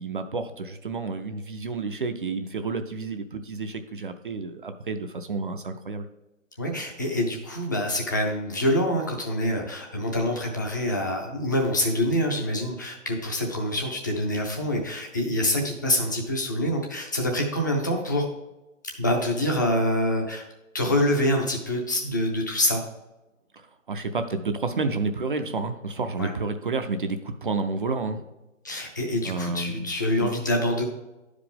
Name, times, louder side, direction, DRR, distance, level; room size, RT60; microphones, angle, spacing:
voice 1, 0.0-6.0 23.5-28.2 29.2-30.0 30.2-30.3, right 3 dB, 40° right, 7 dB, 0.5 m, -30 dB
voice 2, 6.6-18.3 19.0-20.4 20.7-22.8 26.2-26.3 28.6-30.8, left 1 dB, 15° left, 2 dB, 0.5 m, -26 dB
10.0 x 4.9 x 3.6 m, 1.0 s
figure-of-eight pair, 150°, 39 cm